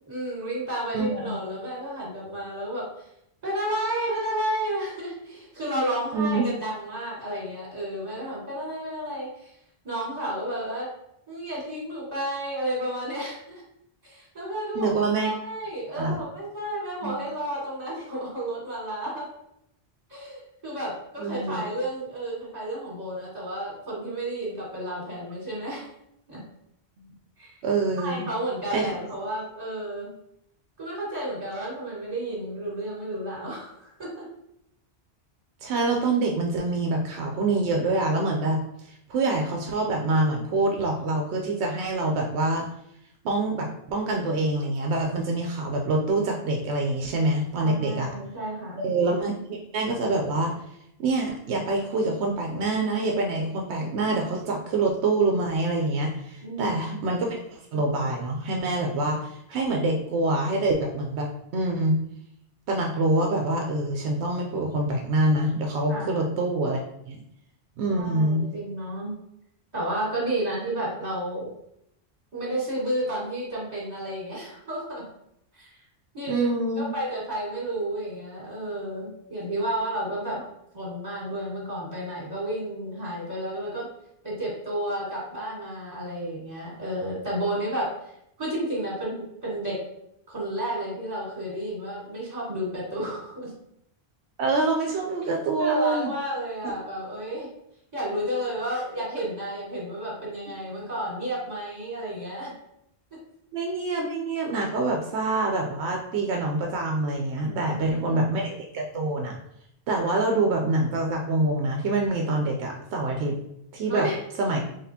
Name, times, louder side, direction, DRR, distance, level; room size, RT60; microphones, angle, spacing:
voice 1, 0.1-2.9 3.4-9.5 9.8-10.9 11.3-13.6 14.0-19.3 20.1-25.9 26.3-26.4 27.4-27.5 28.0-30.1 30.8-34.3 47.6-48.9 56.4-56.8 65.9-66.2 67.9-69.2 69.7-71.5 72.3-75.0 75.5-75.8 76.1-76.5 76.7-80.4 80.7-83.9 84.2-87.9 88.4-89.8 90.3-93.5 95.6-97.5 97.9-102.5 107.4-108.2 113.9-114.2, right 1 dB, 40° right, -5 dB, 1.7 m, -31 dB
voice 2, 0.9-1.4 6.1-6.5 14.7-15.3 16.0-16.2 17.0-17.2 21.2-21.6 27.0-27.1 27.6-28.3 28.7-28.9 35.6-38.6 38.8-42.7 43.2-48.1 48.8-50.5 51.0-61.3 61.5-62.0 62.7-66.8 67.0-67.2 67.8-68.5 76.3-76.9 94.4-96.1 96.6-96.7 103.5-109.4 109.9-113.4 113.7-114.1 114.4-114.6, right 2 dB, 85° right, 1 dB, 0.9 m, -26 dB
4.1 x 3.3 x 2.7 m, 0.77 s
omnidirectional pair, 1.1 m